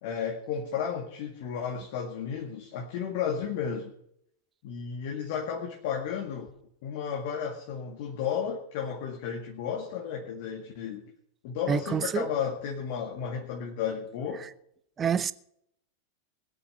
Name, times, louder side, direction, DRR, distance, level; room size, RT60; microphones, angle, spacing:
voice 1, 0.0-3.9 4.6-6.5 6.8-11.1 11.4-14.4, left 7 dB, 50° left, 2.0 m, -33 dB
voice 2, 11.7-12.3 14.4-14.5 15.0-15.3, right 7 dB, 20° right, 0.7 m, -27 dB
21.0 x 8.2 x 5.7 m
figure-of-eight pair, 90°, 0 cm